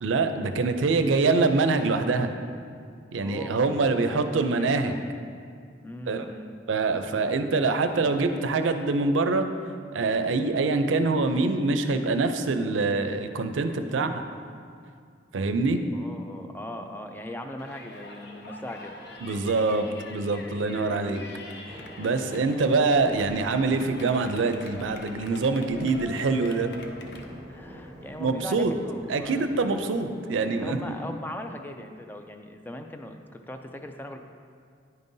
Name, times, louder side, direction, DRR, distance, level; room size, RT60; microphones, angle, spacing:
voice 1, 0.0-2.3 3.1-4.9 6.1-6.2 6.7-9.5 9.9-14.2 15.3-15.8 19.2-21.2 22.0-26.7 28.2-28.7 29.1-30.8, right 3 dB, 90° right, 8 dB, 0.4 m, -25 dB
voice 2, 3.2-5.0 5.8-6.5 15.9-19.0 27.5-29.5 30.6-34.2, left 1 dB, 10° left, 5 dB, 0.3 m, -39 dB
Yell, 17.6-27.3, left 2 dB, 60° left, 0.5 m, -45 dB
sound 1, 18.6-31.1, equal, 20° right, 1.3 m, -47 dB
9.4 x 5.4 x 2.7 m, 2.2 s
head